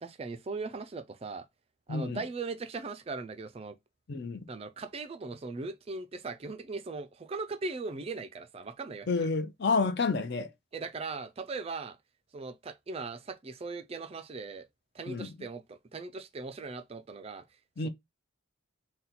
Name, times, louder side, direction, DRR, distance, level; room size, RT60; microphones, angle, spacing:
voice 1, 0.0-1.5 1.9-3.8 4.5-9.3 10.7-12.0 12.3-14.7 14.9-17.4 17.8-17.9, right 3 dB, 30° right, 0.3 m, -39 dB
voice 2, 1.9-2.2 4.1-4.4 9.1-10.5 15.1-15.3 17.8-17.9, left 4 dB, 50° left, 0.6 m, -29 dB
4.0 x 2.2 x 4.1 m
head